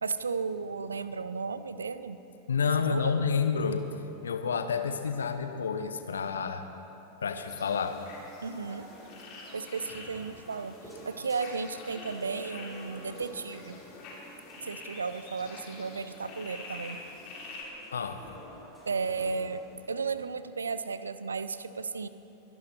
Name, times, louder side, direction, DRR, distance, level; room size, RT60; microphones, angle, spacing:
voice 1, 0.0-2.2 2.6-3.1 8.4-8.9 9.5-10.7 11.1-13.8 14.6-17.0 18.9-19.6 19.9-22.1, right 5 dB, 75° right, 13 dB, 0.6 m, -34 dB
voice 2, 2.5-3.9 4.2-6.6 7.2-8.0 17.9-18.2, left 6 dB, 70° left, 8 dB, 1.0 m, -29 dB
sound 1, 7.5-17.6, left 3 dB, 40° left, 3.4 m, -47 dB
sound 2, 8.4-20.3, left 1 dB, ahead, 3.7 m, -51 dB
23.0 x 11.0 x 4.4 m, 2.9 s
figure-of-eight pair, 90°, 0 cm